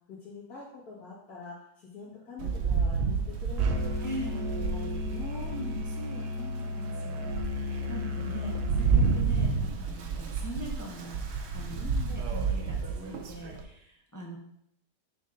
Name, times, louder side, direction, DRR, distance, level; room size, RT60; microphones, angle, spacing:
voice 1, 0.1-3.9 4.2-5.5 6.3-6.8 11.8-12.2, left 4 dB, 75° left, -9 dB, 2.2 m, -45 dB
Rain, 2.4-5.9 6.5-6.6 7.0-13.6, right 5 dB, 60° right, 0.8 m, -30 dB
Musical instrument, 3.6-9.3, left 2 dB, 80° right, 1.3 m, -34 dB
voice 2, 4.0-4.5 5.5-11.8 12.1-14.4, right 1 dB, 20° left, -1 dB, 0.6 m, -42 dB
7.1 x 5.7 x 2.5 m, 0.73 s
omnidirectional pair, 1.7 m